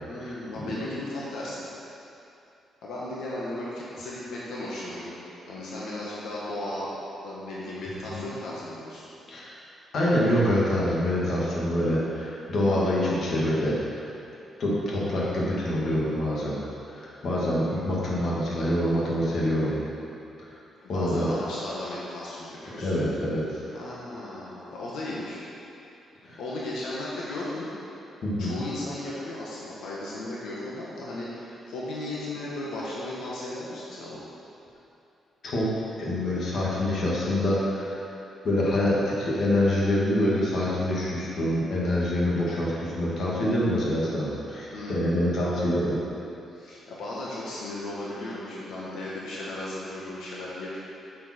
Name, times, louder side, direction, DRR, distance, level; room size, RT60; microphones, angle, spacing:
voice 1, 0.1-1.7 2.8-5.1 5.4-6.9 7.2-9.0 12.6-12.9 20.8-22.9 23.7-25.4 26.4-27.7 28.4-34.2 44.7-45.5 46.5-50.8, left 1 dB, 85° left, -6 dB, 1.6 m, -35 dB
voice 2, 9.9-14.0 14.6-16.6 16.9-19.8 20.9-21.3 22.8-23.6 26.2-26.4 28.2-28.6 35.4-35.7 36.0-38.0 38.4-45.9, left 1 dB, 50° left, -6 dB, 2.1 m, -26 dB
8.7 x 7.5 x 4.5 m, 2.8 s
cardioid pair, 160°, 0 cm